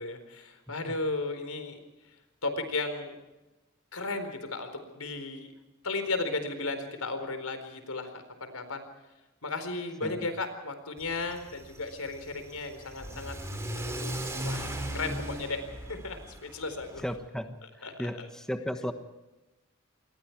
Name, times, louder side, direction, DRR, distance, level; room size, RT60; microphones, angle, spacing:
voice 1, 0.0-1.8 2.0-2.1 2.4-3.2 3.9-5.5 5.8-8.9 9.4-13.4 14.4-17.0 17.8-18.3 18.8-18.9, left 3 dB, 85° left, 9 dB, 4.3 m, -35 dB
Car / Accelerating revving vroom, 11.0-17.2, right 1 dB, 15° right, 4.7 m, -38 dB
voice 2, 17.0-18.9, equal, 5° left, 7 dB, 1.3 m, -35 dB
28.0 x 22.0 x 4.7 m, 1.0 s
head